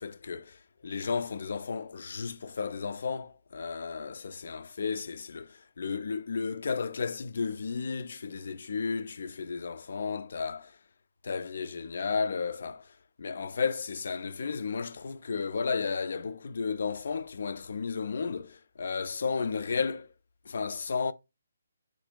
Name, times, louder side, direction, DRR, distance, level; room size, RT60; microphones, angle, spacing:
voice 1, 0.0-10.7 11.2-12.9 13.2-20.1 20.5-21.1, left 5 dB, 60° left, 0.4 m, -33 dB
4.0 x 2.5 x 4.5 m
figure-of-eight pair, 145°, 0 cm